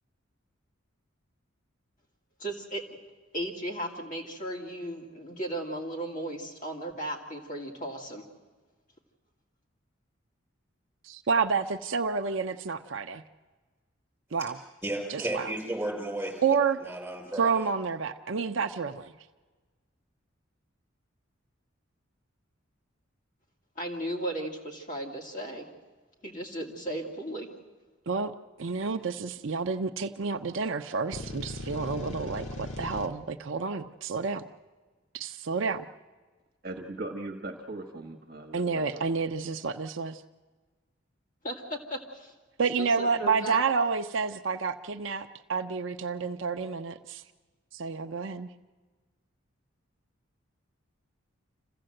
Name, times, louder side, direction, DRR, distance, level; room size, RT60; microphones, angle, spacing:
voice 1, 2.4-2.8 3.3-8.2 23.8-25.7 26.2-27.5 41.4-42.3 42.8-43.6, right 1 dB, 40° left, 0 dB, 2.4 m, -36 dB
voice 2, 11.0-13.2 14.3-14.6 15.1-15.5 16.4-16.8 17.4-19.1 28.1-34.4 35.1-35.9 38.5-40.2 42.6-47.2 47.7-48.5, right 5 dB, 65° right, 8 dB, 0.6 m, -29 dB
voice 3, 14.8-16.4 16.8-17.6, right 1 dB, 10° right, -2 dB, 5.8 m, -33 dB
sound 1, 31.1-33.1, left 1 dB, 70° left, 2.0 m, -38 dB
voice 4, 36.6-39.0, right 2 dB, 45° right, 4 dB, 1.4 m, -39 dB
26.5 x 15.5 x 7.8 m, 1.4 s
head